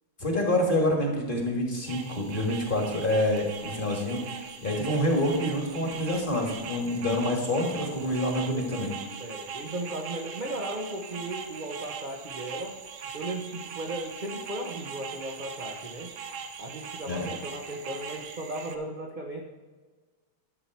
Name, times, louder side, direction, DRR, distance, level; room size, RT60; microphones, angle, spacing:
voice 1, 0.2-8.9 17.1-17.3, left 1 dB, 25° left, 1 dB, 1.6 m, -27 dB
sound 1, 1.9-18.8, right 6 dB, 80° right, 1.7 m, -40 dB
voice 2, 9.2-12.8 13.1-16.1 16.6-19.4, right 1 dB, 50° right, 0 dB, 0.5 m, -36 dB
11.5 x 7.0 x 4.5 m, 1.4 s
omnidirectional pair, 2.3 m